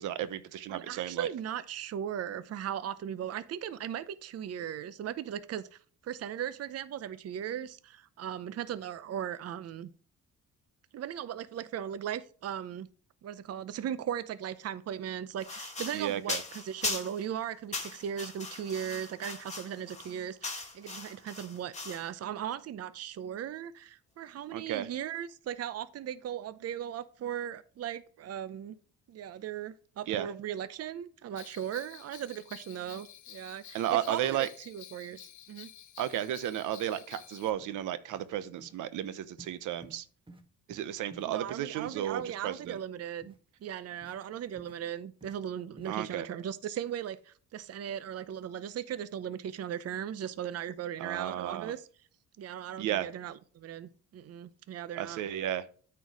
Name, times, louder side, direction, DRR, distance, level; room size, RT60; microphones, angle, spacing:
voice 1, 0.0-1.3 15.9-16.4 24.5-24.9 30.1-30.3 33.7-34.5 36.0-40.0 40.7-42.8 45.8-46.3 51.0-51.7 52.8-53.1 55.0-55.7, right 11 dB, 85° right, 0.8 m, -33 dB
voice 2, 0.7-9.9 10.9-12.9 13.2-28.8 29.1-33.8 34.1-35.2 35.5-35.7 41.3-43.3 43.6-51.8 52.4-55.2, right 9 dB, 55° right, 0.7 m, -38 dB
sound 1, 15.4-17.3 17.7-22.1, left 3 dB, 20° left, 2.4 m, -39 dB
Bell, 31.3-37.5, left 11 dB, 75° left, 1.0 m, -51 dB
sound 2, 37.2-37.3 37.6-37.8 38.1-38.3 38.6-38.8 39.4-39.5 39.8-40.0 40.3-40.4 40.7-40.8 41.1-42.3 42.6-42.8 43.2-43.4 44.0-44.2 44.5-44.8 45.2-45.4 45.8-45.9, right 2 dB, 15° right, 1.6 m, -53 dB
9.1 x 4.6 x 4.7 m
cardioid pair, 90°, 30 cm